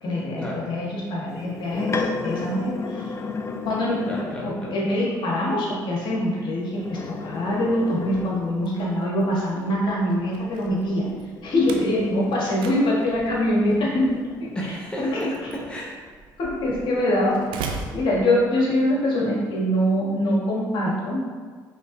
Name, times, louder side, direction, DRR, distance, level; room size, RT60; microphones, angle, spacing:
voice 1, 0.0-3.2 3.6-11.1 11.4-14.1 14.4-14.5 15.0-15.2 16.4-17.4 17.9-21.2, left 1 dB, 65° left, -4 dB, 1.3 m, -24 dB
sound 1, 1.3-4.6 6.6-8.9 10.9-16.1 16.6-18.4, left 4 dB, 35° left, 0.4 m, -35 dB
voice 2, 4.1-4.8 14.5-15.9, equal, 10° left, -4 dB, 1.1 m, -32 dB
Slam, 8.1-18.9, right 4 dB, 75° right, 0.5 m, -41 dB
5.1 x 3.4 x 2.6 m, 1.5 s
supercardioid pair, 65°, 9 cm